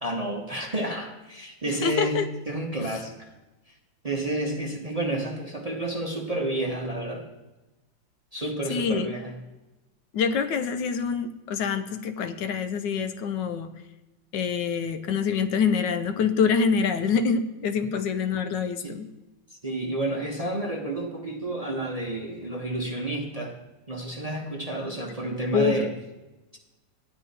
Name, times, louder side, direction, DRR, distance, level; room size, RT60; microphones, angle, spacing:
voice 1, 0.0-2.2 2.5-3.3 4.0-7.3 8.3-9.4 18.8-18.9 19.5-23.6 23.9-25.9, right 1 dB, 25° right, 0 dB, 0.9 m, -30 dB
voice 2, 1.7-2.3 8.7-9.2 10.1-13.7 14.3-19.1 25.5-25.8, left 6 dB, 75° left, 10 dB, 1.3 m, -26 dB
12.5 x 9.9 x 4.2 m, 1.1 s
omnidirectional pair, 2.0 m